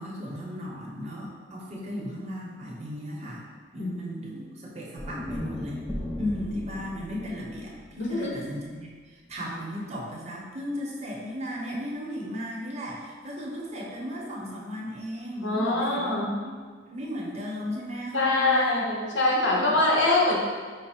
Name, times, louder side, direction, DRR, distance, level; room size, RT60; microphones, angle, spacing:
voice 1, 0.0-3.5 3.7-5.9 6.2-16.2 16.4-16.5 16.9-18.8 19.3-19.8, equal, 35° right, -3 dB, 0.7 m, -36 dB
voice 2, 3.8-4.4 8.0-8.3 15.4-16.3 18.1-20.4, left 2 dB, 85° left, -2 dB, 0.8 m, -24 dB
sound 1, 5.0-9.2, left 1 dB, 5° left, 0.4 m, -37 dB
5.2 x 2.0 x 4.2 m, 1.5 s
head